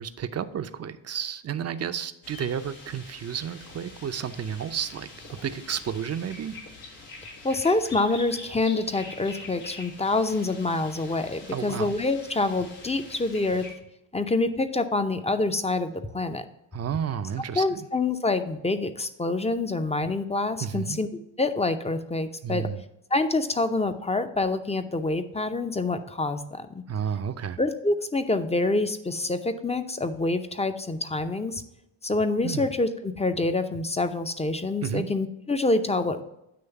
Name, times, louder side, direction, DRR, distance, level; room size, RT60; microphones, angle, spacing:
voice 1, 0.0-6.6 11.5-11.9 16.7-17.9 20.6-21.0 22.4-22.8 26.9-27.6 32.4-32.7 34.8-35.1, right 8 dB, 30° right, 11 dB, 0.5 m, -32 dB
sound 1, 2.2-13.7, left 3 dB, 90° left, 1.6 m, -45 dB
voice 2, 7.4-13.6 14.1-16.5 17.6-21.1 21.4-22.7 23.1-26.8 27.6-31.6 32.0-36.2, left 2 dB, 15° left, 9 dB, 0.5 m, -26 dB
8.7 x 3.1 x 5.7 m, 0.84 s
supercardioid pair, 50°, 50 cm